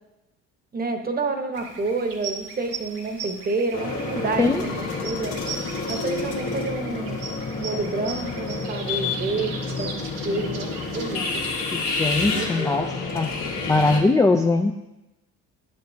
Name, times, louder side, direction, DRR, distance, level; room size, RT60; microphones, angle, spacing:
voice 1, 0.7-5.3 5.9-7.2 7.5-11.4 12.3-12.7, right 3 dB, 30° right, 6 dB, 0.9 m, -29 dB
sound 1, 1.5-12.4, right 4 dB, 85° right, 1.3 m, -38 dB
sound 2, 3.7-14.0, left 4 dB, 70° left, 1.6 m, -29 dB
voice 2, 11.7-13.3 13.7-14.7, left 3 dB, 10° left, 4 dB, 0.3 m, -21 dB
9.2 x 6.9 x 2.7 m, 0.98 s
supercardioid pair, 80°, 32 cm